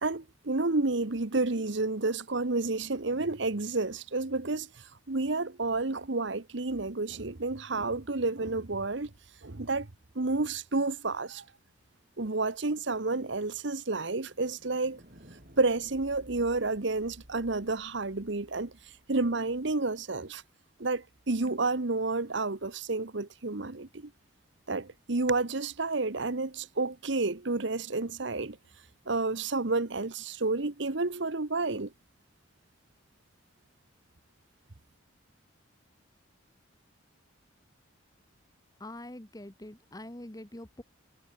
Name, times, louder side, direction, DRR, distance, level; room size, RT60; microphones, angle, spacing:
voice 1, 0.0-9.1 9.4-9.9 10.1-11.4 12.2-15.0 15.6-18.7 19.1-20.4 20.8-24.1 24.7-28.6 29.1-31.9, right 3 dB, 60° right, 1.2 m, -30 dB
sound 1, 8.7-10.8 12.7-20.7, equal, 45° right, 5.6 m, -58 dB
voice 2, 38.8-40.8, left 1 dB, 20° left, 1.2 m, -44 dB
head